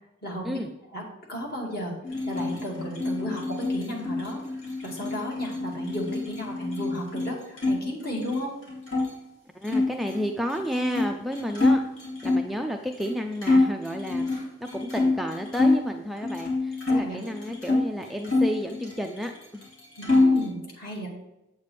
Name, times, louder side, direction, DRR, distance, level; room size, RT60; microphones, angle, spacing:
voice 1, 0.2-0.6 0.9-1.0 1.3-1.9 2.2-4.4 4.8-8.5 16.9-17.2 20.0-21.1, equal, 45° left, -2 dB, 2.4 m, -34 dB
sound 1, 2.0-7.8 8.1-9.1 9.6-12.5 13.0-13.1 13.4-15.8 16.2-17.8 18.2-19.4 19.6-20.5, left 2 dB, 65° left, 2.8 m, -26 dB
voice 2, 9.5-11.8 12.2-14.3 14.6-19.7, equal, ahead, 3 dB, 0.3 m, -31 dB
8.2 x 8.1 x 3.4 m, 0.92 s
head